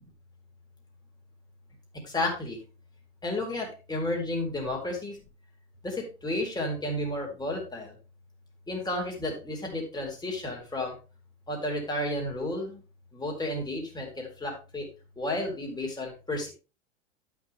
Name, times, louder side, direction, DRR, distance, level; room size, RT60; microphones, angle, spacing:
voice 1, 2.0-2.6 3.2-5.1 5.8-7.9 8.7-10.9 11.5-12.8 13.1-14.9 15.2-16.5, left 1 dB, 10° left, 0 dB, 4.0 m, -32 dB
12.5 x 6.0 x 3.6 m, 0.32 s
figure-of-eight pair, 90°, 35 cm